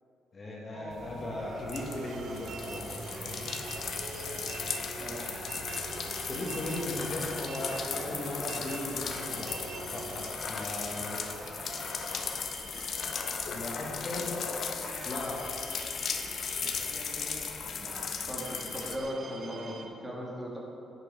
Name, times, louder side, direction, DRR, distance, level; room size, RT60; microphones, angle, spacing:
voice 1, 0.3-2.8 3.2-3.4 6.3-9.6 9.9-11.2 13.5-14.4 15.0-15.4, left 1 dB, 40° left, -3 dB, 1.9 m, -37 dB
sound 1, 0.7-19.9, right 3 dB, 50° right, 1.1 m, -46 dB
sound 2, 0.9-19.0, left 6 dB, 60° left, 0.8 m, -37 dB
sound 3, 1.7-10.3, right 5 dB, 85° right, 0.7 m, -44 dB
voice 2, 5.0-5.3 18.3-20.6, equal, 15° right, -4 dB, 2.3 m, -38 dB
10.5 x 6.7 x 4.8 m, 2.9 s
cardioid pair, 90°, 0 cm